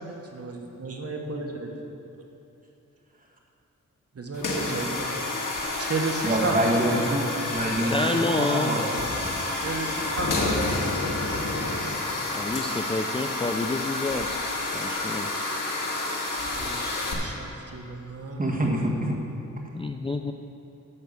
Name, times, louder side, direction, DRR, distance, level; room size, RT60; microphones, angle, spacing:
voice 1, 0.0-1.8 4.1-5.2 5.8-7.0 7.8-8.2 9.6-10.9 16.4-18.5, right 3 dB, 50° right, 2 dB, 1.1 m, -33 dB
sound 1, 4.3-17.1, left 2 dB, 85° left, 1.6 m, -29 dB
voice 2, 6.2-7.2 7.5-7.9 8.3-9.4 18.4-19.2, right 1 dB, 25° right, -1 dB, 1.5 m, -26 dB
voice 3, 7.8-8.8 12.3-14.4 14.7-15.3 19.7-20.3, left 2 dB, 20° left, 5 dB, 0.3 m, -28 dB
11.0 x 5.9 x 6.8 m, 2.7 s
wide cardioid pair, 100°, 31 cm